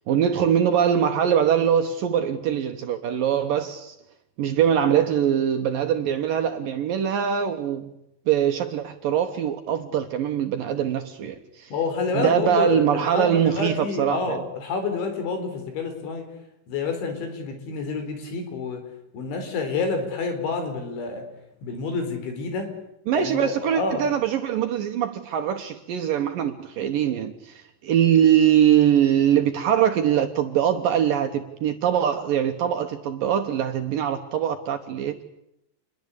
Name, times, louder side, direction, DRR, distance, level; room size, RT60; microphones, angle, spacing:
voice 1, 0.1-4.0 4.4-7.9 8.3-11.7 12.1-14.4 23.1-35.2, right 9 dB, 65° right, 2.3 m, -22 dB
voice 2, 11.7-16.2 16.7-18.8 19.1-21.2 21.6-22.7 23.1-24.1, left 4 dB, 80° left, 6.7 m, -28 dB
28.5 x 21.5 x 8.4 m
omnidirectional pair, 5.2 m